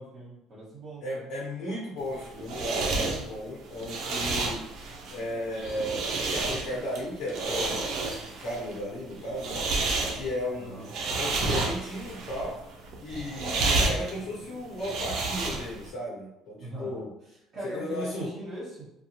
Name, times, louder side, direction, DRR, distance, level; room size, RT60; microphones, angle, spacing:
voice 1, 0.0-1.3 10.5-10.9 16.6-18.9, equal, 45° right, -9 dB, 1.2 m, -40 dB
voice 2, 1.0-4.6 5.1-6.0 6.3-7.9 8.2-12.6 13.0-17.1 17.6-18.3, left 1 dB, 70° left, -5 dB, 1.0 m, -35 dB
Curtain on rail, 2.0-15.9, right 3 dB, 60° right, 0.5 m, -31 dB
2.5 x 2.3 x 2.9 m, 0.85 s
cardioid pair, 125°, 0 cm